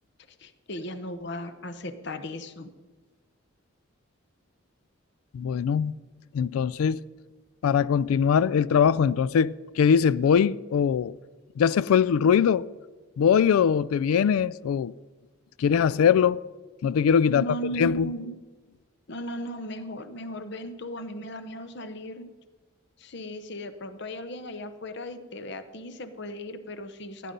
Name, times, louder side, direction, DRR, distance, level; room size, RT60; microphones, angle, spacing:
voice 1, 0.4-2.7 17.3-18.4 19.1-22.3 23.0-27.3, equal, 55° left, 0.9 m, -36 dB
voice 2, 5.3-6.0 6.3-7.0 7.6-11.2 11.6-12.7 13.2-14.9 15.6-16.4 16.8-18.1, left 7 dB, 85° left, 0.3 m, -22 dB
15.0 x 10.0 x 5.3 m
head